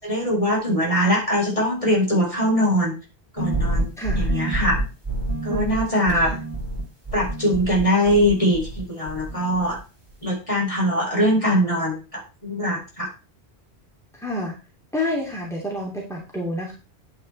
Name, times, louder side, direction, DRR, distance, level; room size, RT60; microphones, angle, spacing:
voice 1, 0.0-2.9 3.3-4.8 5.4-6.3 7.1-9.8 10.2-13.1, equal, 30° left, -2 dB, 4.5 m, -22 dB
sound 1, 3.4-8.8 9.1-9.8, right 2 dB, 20° right, 3.3 m, -27 dB
voice 2, 4.0-4.3 5.5-5.8 6.1-6.4 14.1-14.5 14.9-16.7, left 1 dB, 5° left, -2 dB, 2.9 m, -29 dB
10.5 x 9.6 x 4.3 m, 0.32 s
omnidirectional pair, 1.1 m